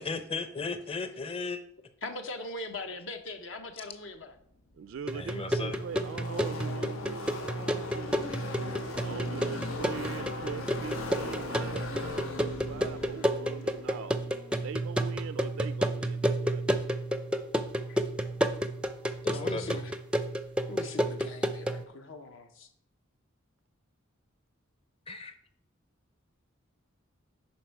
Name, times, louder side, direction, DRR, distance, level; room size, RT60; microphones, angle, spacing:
voice 1, 0.0-1.6 5.1-5.8 19.2-19.8 25.1-25.3, left 4 dB, 30° left, 9 dB, 0.7 m, -36 dB
voice 2, 2.0-4.3 8.3-8.4 17.9-18.0 19.3-19.9 20.7-22.7, left 2 dB, 65° left, 6 dB, 0.9 m, -41 dB
Car passing by / Race car auto racing, 4.3-4.4 4.6-15.2, left 3 dB, 85° left, 1.1 m, -40 dB
voice 3, 4.8-8.2 9.0-14.2 14.6-16.8, right 6 dB, 65° right, 12 dB, 0.3 m, -42 dB
sound 1, 5.1-21.8, equal, 5° right, 0.4 m, -31 dB
10.5 x 4.4 x 4.6 m, 0.69 s
head